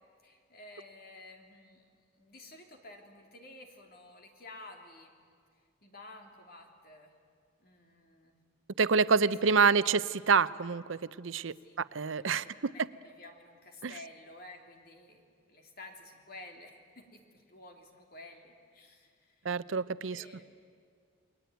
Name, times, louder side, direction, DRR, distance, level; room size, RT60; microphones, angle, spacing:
voice 1, 0.2-1.9 2.2-5.1 5.8-7.2 7.6-8.4 9.2-9.9 11.6-19.5 20.1-20.6, left 2 dB, 50° left, 3 dB, 3.3 m, -52 dB
voice 2, 8.8-12.7 13.8-13.9 19.4-20.2, right 5 dB, 75° right, 16 dB, 0.6 m, -27 dB
30.0 x 21.0 x 9.2 m, 2.1 s
head